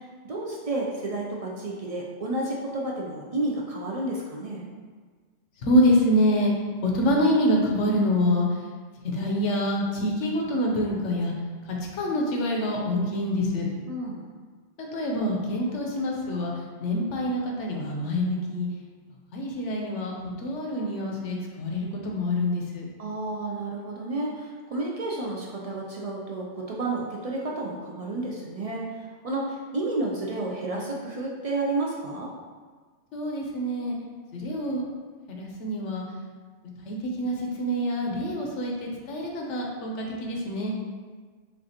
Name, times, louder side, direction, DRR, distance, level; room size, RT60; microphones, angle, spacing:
voice 1, 0.2-4.7 13.9-14.2 23.0-28.9 29.2-32.3, right 2 dB, 55° right, -2 dB, 0.4 m, -31 dB
voice 2, 5.6-6.5 6.8-8.5 9.0-11.3 11.7-13.7 14.8-16.5 16.8-18.7 19.3-20.1 20.4-22.9 33.1-33.9 34.3-34.9 35.3-36.0 36.8-40.8, equal, 80° left, -1 dB, 1.1 m, -26 dB
6.3 x 2.4 x 2.8 m, 1.5 s
omnidirectional pair, 1.2 m